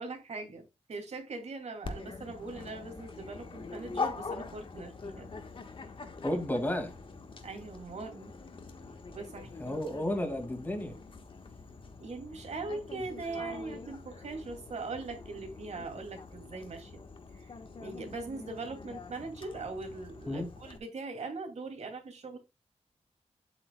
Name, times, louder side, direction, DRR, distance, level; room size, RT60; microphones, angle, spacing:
voice 1, 0.0-5.3 7.4-8.3 9.1-9.8 12.0-17.0 17.3-17.5 17.8-22.4, right 3 dB, 75° right, 2.5 m, -41 dB
Dog, 1.8-20.8, left 4 dB, 50° left, 1.3 m, -44 dB
voice 2, 6.2-6.9 9.6-10.9 20.3-20.5, left 1 dB, 15° left, 2.1 m, -32 dB
8.8 x 8.2 x 2.2 m
wide cardioid pair, 160°, 11 cm